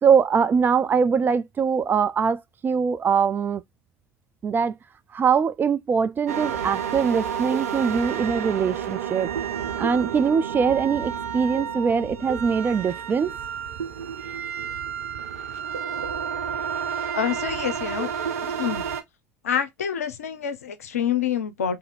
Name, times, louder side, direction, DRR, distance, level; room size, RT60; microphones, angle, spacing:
voice 1, 0.0-3.6 4.4-4.7 5.1-9.3 9.8-13.4, right 6 dB, 25° right, 0.3 m, -22 dB
sound 1, 6.3-19.0, right 8 dB, 75° right, 0.6 m, -30 dB
voice 2, 17.1-18.1 18.4-18.8 19.4-21.8, left 8 dB, 75° left, 0.5 m, -27 dB
2.7 x 2.6 x 3.9 m
figure-of-eight pair, 70°, 8 cm